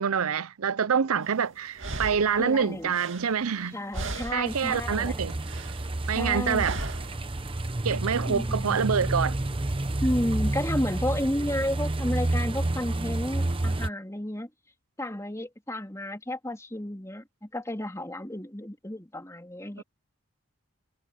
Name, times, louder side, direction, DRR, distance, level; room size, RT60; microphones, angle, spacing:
voice 1, 0.0-3.8 4.3-5.3 6.1-6.8 7.8-9.3 19.8-19.9, right 6 dB, 85° right, 0.6 m, -26 dB
sound 1, 1.2-1.3 1.8-3.7 3.9-4.6 5.0-5.9 6.6-7.2, right 2 dB, 60° right, 2.5 m, -36 dB
voice 2, 2.4-3.0 3.7-5.2 6.1-6.9 8.3-8.8 10.0-14.5 15.0-19.8, left 1 dB, 15° left, 3.0 m, -32 dB
sound 2, 4.5-13.9, right 2 dB, 25° right, 0.9 m, -30 dB
head